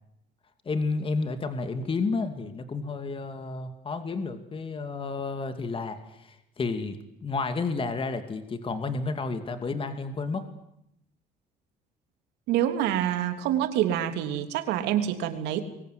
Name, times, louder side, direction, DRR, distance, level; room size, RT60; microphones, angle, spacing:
voice 1, 0.6-10.4, left 4 dB, 30° left, 8 dB, 2.7 m, -31 dB
voice 2, 12.5-15.6, right 11 dB, 90° right, 7 dB, 3.3 m, -26 dB
25.0 x 22.5 x 9.7 m, 0.78 s
cardioid pair, 110°, 17 cm